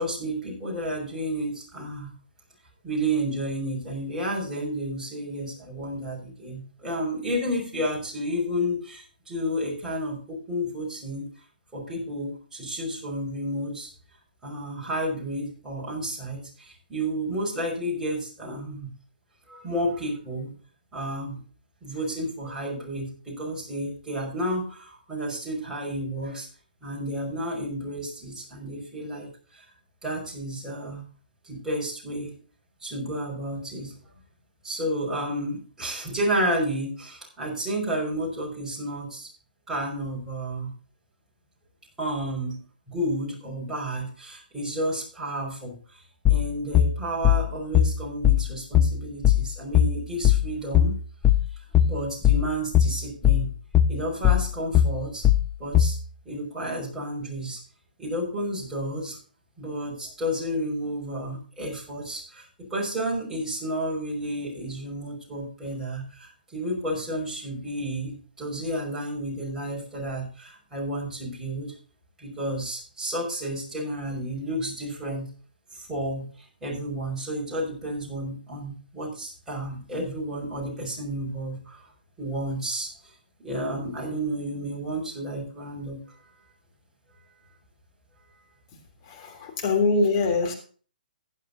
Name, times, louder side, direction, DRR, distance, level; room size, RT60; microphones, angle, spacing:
voice 1, 0.0-2.1 2.8-11.3 11.7-13.9 14.4-18.9 19.5-20.5 20.9-21.4 21.8-26.5 26.8-29.6 30.0-31.1 31.4-32.3 32.8-33.9 34.6-39.3 39.7-40.7 42.0-42.6 42.9-46.0 46.3-50.9 51.8-53.5 53.9-55.2 55.6-56.0 56.3-57.6 58.0-59.2 59.6-71.7 72.2-75.3 75.7-76.3 76.6-81.9 82.2-83.1 83.4-86.3 89.2-89.5, right 1 dB, 10° right, -4 dB, 5.5 m, -31 dB
sound 1, 46.3-56.0, left 10 dB, 15° left, 0.6 m, -20 dB
voice 2, 89.1-90.5, left 3 dB, 35° left, 3 dB, 3.2 m, -23 dB
16.0 x 10.0 x 2.7 m, 0.39 s
hypercardioid pair, 140°, 5 cm